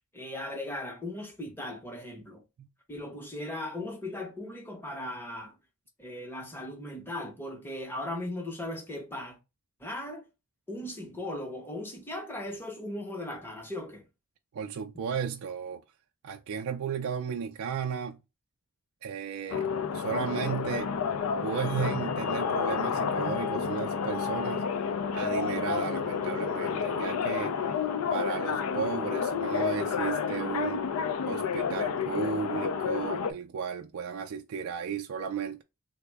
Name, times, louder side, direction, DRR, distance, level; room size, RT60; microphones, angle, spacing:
voice 1, 0.1-2.4 2.9-5.6 6.0-9.4 9.8-10.3 10.7-14.0, left 1 dB, 10° left, 0.7 m, -38 dB
voice 2, 14.5-15.8 16.2-18.2 19.0-20.9 21.4-24.7 25.1-27.6 28.1-30.8 31.2-35.6, right 7 dB, 75° right, 0.3 m, -34 dB
sound 1, 19.5-33.3, left 6 dB, 85° left, 0.4 m, -30 dB
3.4 x 2.0 x 3.3 m
head